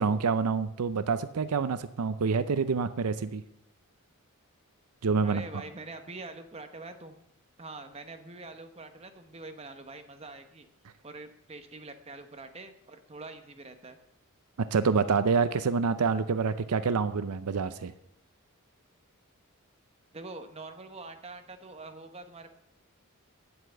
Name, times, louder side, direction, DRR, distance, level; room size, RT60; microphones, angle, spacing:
voice 1, 0.0-3.4 5.0-5.4 14.6-17.9, right 5 dB, 90° right, 12 dB, 0.5 m, -27 dB
voice 2, 5.2-7.2 7.6-10.7 11.0-14.0 20.1-22.5, right 3 dB, 25° right, 7 dB, 1.0 m, -44 dB
9.6 x 8.1 x 7.8 m, 0.77 s
head